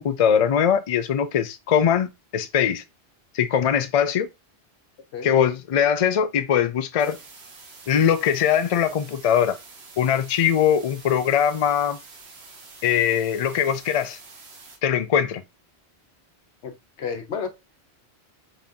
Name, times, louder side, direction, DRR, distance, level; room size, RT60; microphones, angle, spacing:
voice 1, 0.0-2.8 3.3-4.3 5.2-7.2 7.9-9.6 10.0-12.0 12.8-14.2 14.8-15.4, left 8 dB, 55° left, 0.4 m, -21 dB
sound 1, 7.0-14.8, right 3 dB, 70° right, 1.3 m, -46 dB
voice 2, 16.6-17.5, left 6 dB, 85° left, 1.1 m, -31 dB
4.2 x 2.6 x 3.5 m
omnidirectional pair, 1.1 m